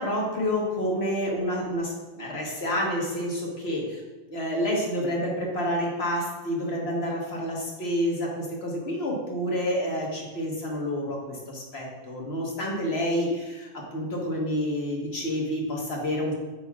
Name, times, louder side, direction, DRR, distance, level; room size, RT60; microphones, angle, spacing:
voice 1, 0.0-4.0 4.3-16.3, equal, 70° left, -2 dB, 1.6 m, -29 dB
8.3 x 6.5 x 2.4 m, 1.2 s
omnidirectional pair, 1.1 m